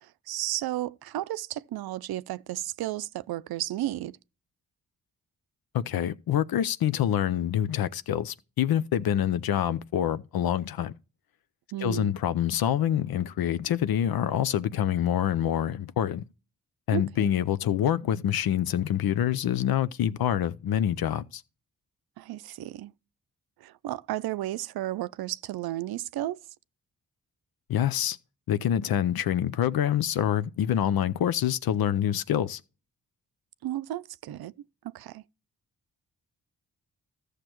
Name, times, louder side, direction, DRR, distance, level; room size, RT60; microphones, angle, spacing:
voice 1, 0.0-4.2 11.7-12.1 16.9-17.3 22.2-22.9 23.6-26.4 33.6-34.5 34.8-35.2, right 14 dB, 90° right, 0.5 m, -33 dB
voice 2, 5.7-10.9 11.8-16.2 16.9-21.4 27.7-28.2 28.5-32.6, left 10 dB, 85° left, 0.6 m, -26 dB
14.0 x 6.6 x 3.0 m
cardioid pair, 85°, 36 cm